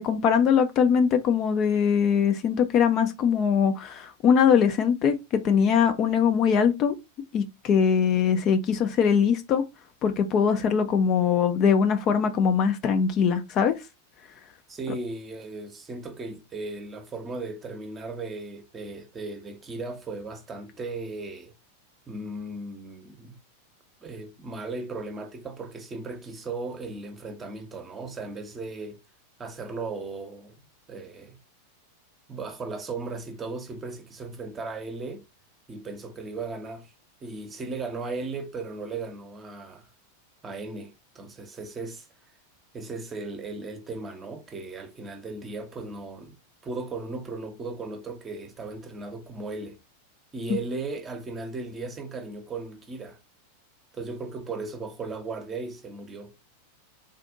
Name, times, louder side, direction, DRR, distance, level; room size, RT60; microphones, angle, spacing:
voice 1, 0.0-7.0 7.3-9.6 10.0-13.8, left 7 dB, 35° left, 0.6 m, -22 dB
voice 2, 14.7-21.5 22.1-23.4 24.0-29.0 29.4-31.4 32.3-35.3 35.7-36.9 37.2-39.9 40.4-42.1 42.7-46.4 46.6-49.8 50.3-53.2 53.9-56.3, right 3 dB, 20° right, 0.9 m, -36 dB
3.9 x 2.5 x 3.7 m
figure-of-eight pair, 90°, 0 cm